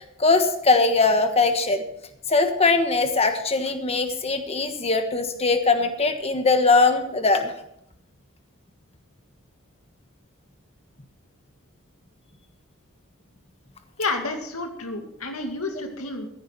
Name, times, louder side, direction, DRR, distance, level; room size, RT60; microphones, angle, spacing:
voice 1, 0.0-1.8 2.3-7.5, left 3 dB, 30° left, 7 dB, 1.3 m, -21 dB
voice 2, 14.0-16.3, left 3 dB, 85° left, 4 dB, 2.2 m, -30 dB
15.0 x 10.0 x 4.6 m, 0.78 s
head